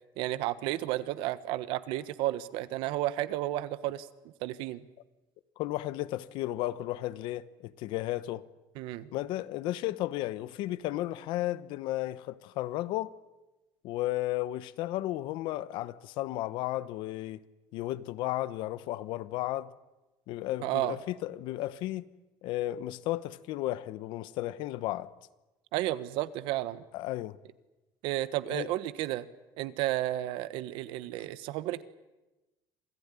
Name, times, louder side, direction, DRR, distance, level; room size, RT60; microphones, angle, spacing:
voice 1, 0.2-4.1 4.4-4.8 8.8-9.1 20.6-21.0 25.7-26.8 28.0-29.2 29.6-31.8, right 15 dB, 70° right, 1.3 m, -32 dB
voice 2, 5.6-8.4 9.1-13.1 13.8-17.4 17.7-19.7 20.3-22.1 22.4-25.1 26.9-27.4 28.5-28.7, left 15 dB, 60° left, 1.1 m, -34 dB
27.0 x 18.5 x 9.9 m
cardioid pair, 180°, 9 cm